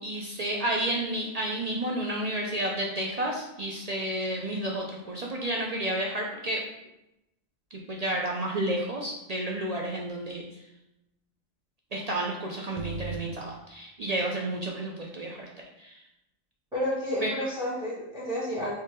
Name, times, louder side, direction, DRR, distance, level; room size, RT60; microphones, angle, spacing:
voice 1, 0.0-6.6 7.7-10.6 11.9-15.5 15.8-16.0 17.2-17.3, right 1 dB, 70° right, -1 dB, 0.3 m, -31 dB
voice 2, 16.7-18.7, equal, 5° right, -6 dB, 1.1 m, -30 dB
4.3 x 3.2 x 3.7 m, 0.89 s
omnidirectional pair, 1.4 m